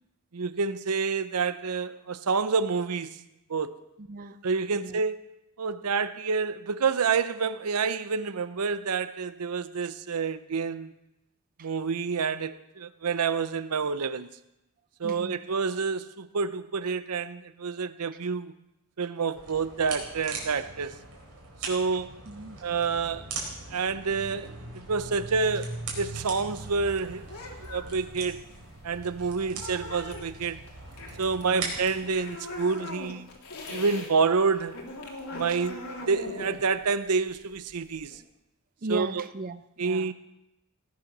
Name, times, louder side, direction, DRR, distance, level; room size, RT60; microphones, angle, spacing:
voice 1, 0.3-3.2 3.5-3.8 4.4-5.2 5.6-10.9 11.6-14.3 15.0-18.5 19.0-21.0 21.7-22.2 22.6-23.3 23.7-27.3 27.7-28.4 28.8-30.6 31.2-33.3 33.7-34.8 35.3-38.2 38.9-39.2 39.8-40.1, right 5 dB, 85° right, 0.7 m, -28 dB
voice 2, 4.0-4.4 4.7-5.0 11.6-11.7 15.0-15.4 22.3-22.6 29.5-29.6 31.4-31.7 35.5-35.6 38.8-40.1, right 2 dB, 40° right, 0.5 m, -37 dB
sound 1, 19.3-32.0, right 3 dB, 70° right, 4.4 m, -40 dB
sound 2, 26.0-34.1 34.4-38.2, left 2 dB, 85° left, 2.8 m, -41 dB
18.0 x 9.6 x 6.0 m
head